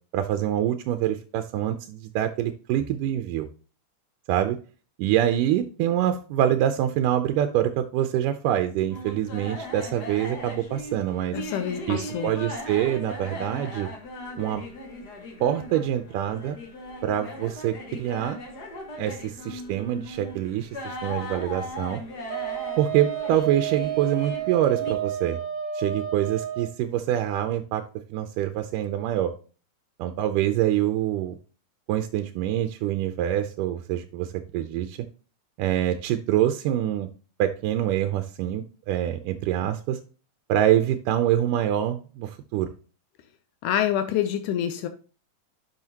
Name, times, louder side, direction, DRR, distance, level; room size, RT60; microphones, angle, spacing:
voice 1, 0.1-3.5 4.3-4.6 5.0-11.4 11.9-13.9 14.4-14.6 15.4-16.6 17.0-18.4 19.0-22.0 22.8-25.4 25.7-27.8 28.1-29.3 30.0-31.4 31.9-35.0 35.6-37.1 37.4-40.0 40.5-42.7, right 11 dB, 90° right, 8 dB, 2.2 m, -25 dB
sound 1, 8.9-24.9, left 1 dB, 45° left, 1.4 m, -38 dB
voice 2, 11.3-12.3 43.6-44.9, left 10 dB, 80° left, 8 dB, 2.1 m, -26 dB
Wind instrument woodwind instrument, 22.3-26.7, right 11 dB, 65° right, 1.1 m, -31 dB
10.5 x 5.6 x 2.8 m, 0.36 s
omnidirectional pair, 3.7 m